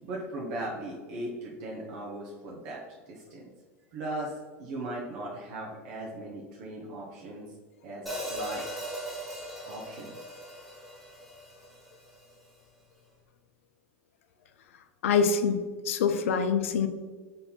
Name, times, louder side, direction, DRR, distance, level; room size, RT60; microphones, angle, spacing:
voice 1, 0.0-3.5 3.9-4.3 4.6-7.5 7.8-8.7 9.6-10.2, right 1 dB, 60° right, -4 dB, 0.8 m, -38 dB
Hi-hat, 8.1-12.2, equal, ahead, 1.4 m, -39 dB
voice 2, 15.0-16.9, left 6 dB, 75° left, 9 dB, 0.4 m, -25 dB
4.0 x 2.7 x 3.9 m, 1.4 s
hypercardioid pair, 90°, 7 cm